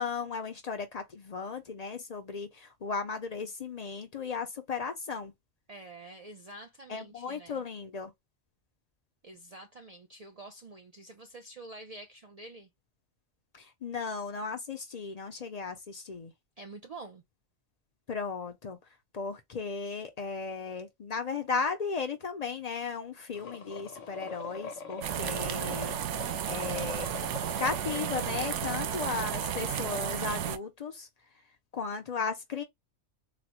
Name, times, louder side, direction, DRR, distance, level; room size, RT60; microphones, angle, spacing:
voice 1, 0.0-5.3 6.9-8.1 13.5-16.3 18.1-18.8 19.1-26.0 26.5-27.1 27.6-31.1 31.7-32.6, left 5 dB, 50° left, 0.5 m, -35 dB
voice 2, 5.7-7.6 9.2-12.7 16.6-17.2 28.9-29.3, right 2 dB, 55° right, 0.4 m, -47 dB
sound 1, 23.3-28.5, left 5 dB, 85° left, 1.1 m, -43 dB
sound 2, 25.0-30.6, right 9 dB, 75° right, 0.9 m, -33 dB
4.0 x 2.0 x 2.8 m
omnidirectional pair, 1.2 m